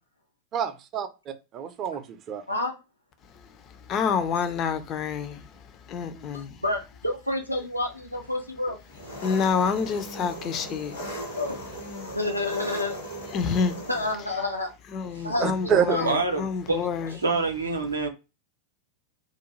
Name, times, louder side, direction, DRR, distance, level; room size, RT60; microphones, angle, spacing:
voice 1, 0.5-2.4 15.4-16.0, right 8 dB, 30° right, 0.5 m, -27 dB
voice 2, 3.2-6.6 9.2-11.4 12.1-12.2 13.3-13.9 14.9-17.2, left 6 dB, 35° left, 0.4 m, -28 dB
voice 3, 6.6-8.8 11.3-11.6 12.0-13.0 13.9-14.7 15.2-16.1, left 2 dB, 85° left, 0.6 m, -29 dB
Engine, 8.9-14.1, equal, 70° left, 1.1 m, -38 dB
voice 4, 16.0-16.4 16.7-16.8 17.2-18.1, right 3 dB, 75° right, 0.6 m, -25 dB
2.4 x 2.2 x 3.0 m
figure-of-eight pair, 90°, 0 cm